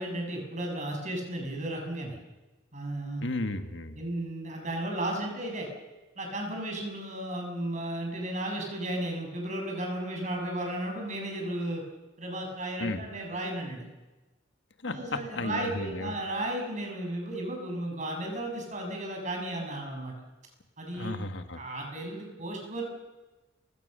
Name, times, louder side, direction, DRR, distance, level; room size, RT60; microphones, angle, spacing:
voice 1, 0.0-2.2 2.7-3.2 4.0-5.7 6.2-11.8 12.2-13.9 14.8-20.1 20.8-21.2 21.6-22.8, right 1 dB, 40° right, 2 dB, 7.2 m, -34 dB
voice 2, 3.2-4.0 12.8-13.1 14.8-16.1 20.9-21.6, left 2 dB, 65° left, 8 dB, 1.8 m, -34 dB
30.0 x 18.0 x 6.8 m, 1.1 s
head